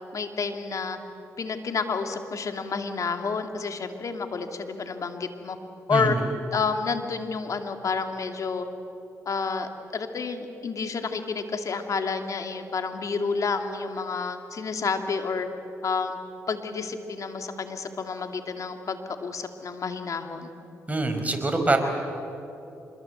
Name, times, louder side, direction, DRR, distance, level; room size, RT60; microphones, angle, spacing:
voice 1, 0.1-1.0 1.4-5.6 5.9-6.2 6.5-8.7 9.3-15.5 15.8-16.2 16.5-20.5, left 5 dB, 60° left, 6 dB, 2.4 m, -30 dB
voice 2, 20.9-21.8, right 2 dB, 25° right, 4 dB, 4.9 m, -24 dB
25.5 x 22.5 x 8.1 m, 2.9 s
supercardioid pair, 55°, 6 cm